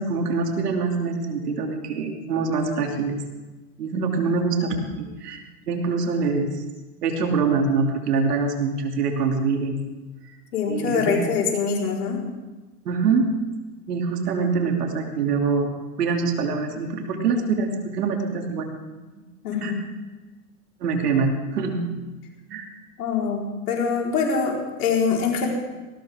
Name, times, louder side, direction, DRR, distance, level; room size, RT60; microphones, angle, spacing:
voice 1, 0.0-3.2 3.8-6.6 7.0-9.8 10.7-11.2 12.8-13.3 13.9-15.7 16.0-18.7 19.2-19.3 19.6-19.7 20.8-21.8 22.5-22.7, right 4 dB, 85° right, 3 dB, 2.9 m, -24 dB
voice 2, 10.5-12.2 19.4-19.8 23.0-25.5, left 5 dB, 80° left, -1 dB, 4.5 m, -24 dB
19.5 x 18.5 x 3.7 m, 1.2 s
hypercardioid pair, 95°, 46 cm